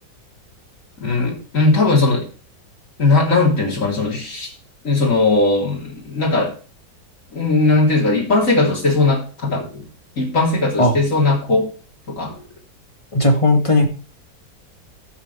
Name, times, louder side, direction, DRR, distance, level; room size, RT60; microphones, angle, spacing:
voice 1, 1.0-2.3 3.0-4.5 4.8-6.6 7.3-9.8 10.2-11.7 12.1-12.4, left 3 dB, 45° left, -3 dB, 3.9 m, -18 dB
voice 2, 13.1-13.9, left 2 dB, 20° left, 2 dB, 2.1 m, -15 dB
12.5 x 8.5 x 3.4 m, 0.36 s
omnidirectional pair, 1.9 m